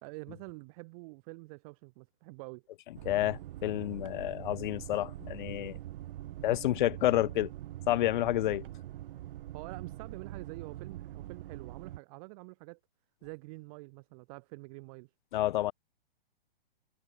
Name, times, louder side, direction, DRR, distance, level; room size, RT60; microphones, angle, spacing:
voice 1, 0.0-2.6 9.5-12.8 13.2-15.1, right 28 dB, 35° right, 1.4 m, -47 dB
sound 1, 3.0-12.0, right 14 dB, 60° right, 0.4 m, -44 dB
voice 2, 3.1-5.8 6.4-7.5 7.9-8.7 15.3-15.7, left 14 dB, 55° left, 0.5 m, -29 dB
hypercardioid pair, 135°, 30 cm